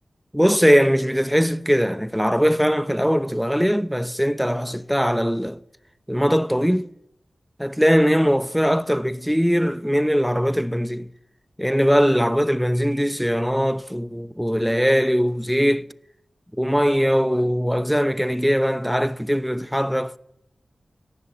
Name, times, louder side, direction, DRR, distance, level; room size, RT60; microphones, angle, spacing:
voice 1, 0.3-5.6 6.1-6.9 7.6-11.1 11.6-15.9 16.5-20.2, equal, ahead, 0.9 m, -20 dB
25.0 x 18.5 x 7.7 m
cardioid pair, 55°, 0 cm